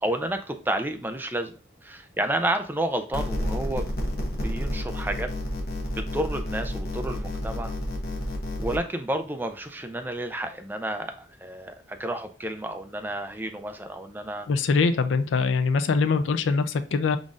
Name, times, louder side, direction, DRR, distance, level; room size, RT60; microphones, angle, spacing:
voice 1, 0.0-1.5 1.8-3.9 4.4-5.3 6.0-7.7 8.6-14.5, right 1 dB, 10° right, 0.4 m, -30 dB
sound 1, 3.1-8.8, left 1 dB, 50° left, 1.0 m, -30 dB
voice 2, 14.5-17.2, left 4 dB, 85° left, 0.4 m, -23 dB
5.1 x 3.9 x 2.4 m
head